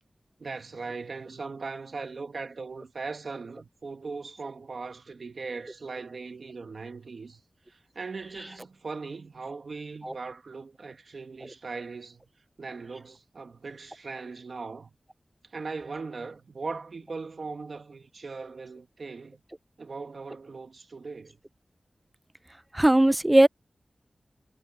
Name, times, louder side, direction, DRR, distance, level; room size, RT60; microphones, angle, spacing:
voice 1, 0.4-7.4 7.7-12.2 12.6-14.9 15.5-19.4 19.8-21.4, right 4 dB, 70° right, 1.7 m, -39 dB
voice 2, 22.7-23.5, right 1 dB, 15° right, 0.3 m, -18 dB
wide cardioid pair, 85°, 0 cm